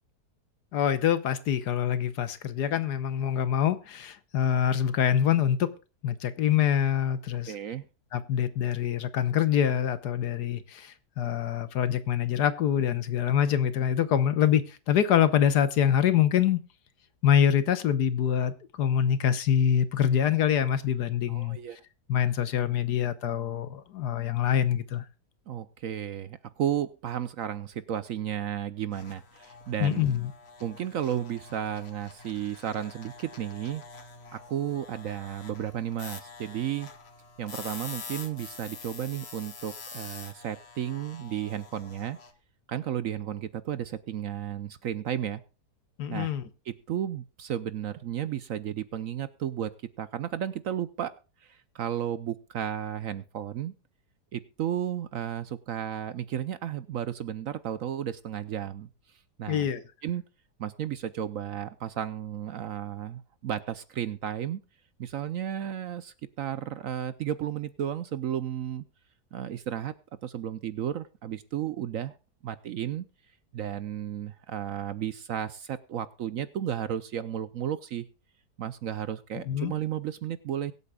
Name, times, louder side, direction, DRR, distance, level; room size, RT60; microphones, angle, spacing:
voice 1, 0.7-5.7 6.0-7.5 8.1-16.6 17.2-21.6 22.1-25.0 29.8-30.3 46.0-46.4 59.5-59.8 79.5-79.7, left 9 dB, 75° left, 1.5 m, -25 dB
voice 2, 7.5-7.8 21.3-21.8 25.5-30.0 30.6-33.8 34.3-36.9 37.4-42.2 42.7-45.4 46.1-46.3 46.7-51.1 51.4-53.7 54.3-58.9 59.4-59.7 60.0-60.2 60.6-64.6 65.0-68.8 69.3-69.9 70.2-72.1 72.4-73.1 73.5-78.1 78.6-80.7, right 10 dB, 65° right, 0.9 m, -33 dB
sound 1, 28.9-42.3, left 5 dB, 40° left, 1.5 m, -46 dB
23.0 x 8.3 x 2.3 m
omnidirectional pair, 1.8 m